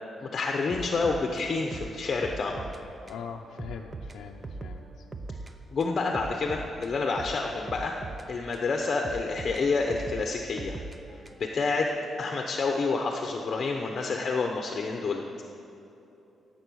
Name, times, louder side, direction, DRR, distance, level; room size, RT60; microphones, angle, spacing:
voice 1, 0.2-2.6 5.7-7.9 8.3-10.8 11.4-11.9 12.2-15.2, left 4 dB, 35° left, 2 dB, 0.9 m, -28 dB
sound 1, 0.7-2.8 3.1-3.2 3.6-5.5 5.8-8.7 9.0-11.6, right 3 dB, 20° right, 0.7 m, -41 dB
voice 2, 3.1-4.8, left 7 dB, 85° left, 0 dB, 0.6 m, -41 dB
17.5 x 7.7 x 6.3 m, 2.9 s
cardioid pair, 150°, 0 cm